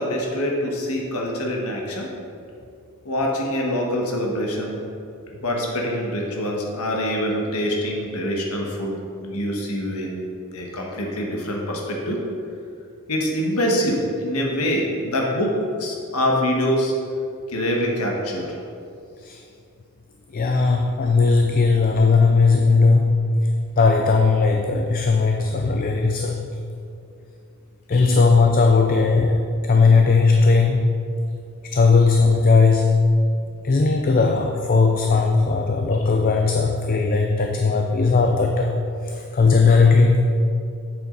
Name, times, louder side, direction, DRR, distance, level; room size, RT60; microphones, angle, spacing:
voice 1, 0.0-2.1 3.0-4.8 5.4-8.9 9.2-10.1 10.5-12.2 13.1-16.9 17.5-18.6 27.9-28.2 36.0-36.1, equal, 85° left, -1 dB, 1.4 m, -25 dB
voice 2, 20.3-23.2 23.8-26.4 27.9-30.9 31.7-33.0 33.6-38.8 39.0-40.3, left 4 dB, 40° left, 3 dB, 0.4 m, -17 dB
8.3 x 7.1 x 3.9 m, 2.5 s
head